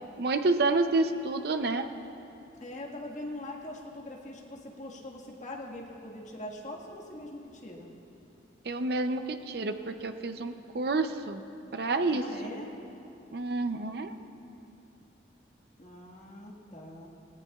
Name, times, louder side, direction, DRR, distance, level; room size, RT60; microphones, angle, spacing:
voice 1, 0.2-1.9 8.6-11.4 11.7-12.2 13.3-14.2, right 3 dB, 55° right, 8 dB, 0.6 m, -29 dB
voice 2, 2.6-7.9 12.1-12.7 15.8-17.1, left 1 dB, 40° left, -2 dB, 1.7 m, -42 dB
20.0 x 17.5 x 2.4 m, 2.9 s
head